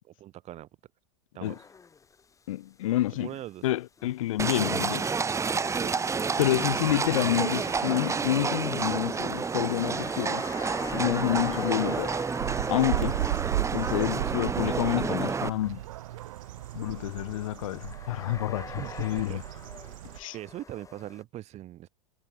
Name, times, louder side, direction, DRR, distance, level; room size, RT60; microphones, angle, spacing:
voice 1, 0.2-0.7 1.3-1.6 3.2-3.6 5.8-5.9 13.9-14.4 18.8-19.4 20.3-21.9, right 14 dB, 40° right, 4.6 m, -40 dB
sound 1, 1.4-2.5 2.8-2.9 4.0-21.2, left 5 dB, 20° left, 4.9 m, -47 dB
voice 2, 2.5-3.3 3.6-5.1 6.4-12.2 12.7-13.4 13.7-15.8 16.7-19.4 20.2-20.4, left 15 dB, 70° left, 7.2 m, -29 dB
Livestock farm animals working animals, 4.4-15.5, right 5 dB, 15° right, 2.8 m, -29 dB
sound 2, 12.4-20.2, right 15 dB, 70° right, 2.6 m, -35 dB
hypercardioid pair, 105°, 18 cm